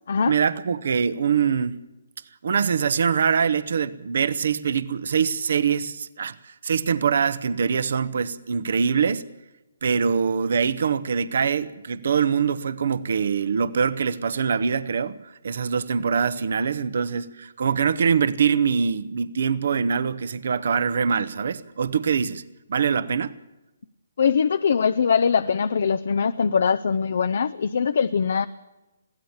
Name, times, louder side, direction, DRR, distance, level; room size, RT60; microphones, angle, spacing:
voice 1, 0.3-1.8 2.4-9.3 9.8-22.4 22.7-23.3, right 6 dB, 60° right, 1.1 m, -23 dB
voice 2, 24.2-28.5, left 6 dB, 60° left, 0.7 m, -22 dB
22.0 x 16.0 x 7.4 m
figure-of-eight pair, 140°, 0 cm